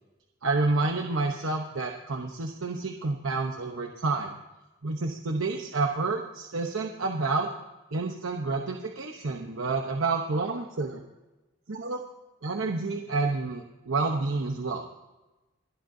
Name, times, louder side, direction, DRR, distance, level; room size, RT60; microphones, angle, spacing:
voice 1, 0.4-4.3 4.8-7.5 7.9-11.0 11.7-12.1 12.4-14.8, right 3 dB, 80° right, 2 dB, 0.9 m, -29 dB
28.0 x 10.5 x 2.7 m, 1.1 s
head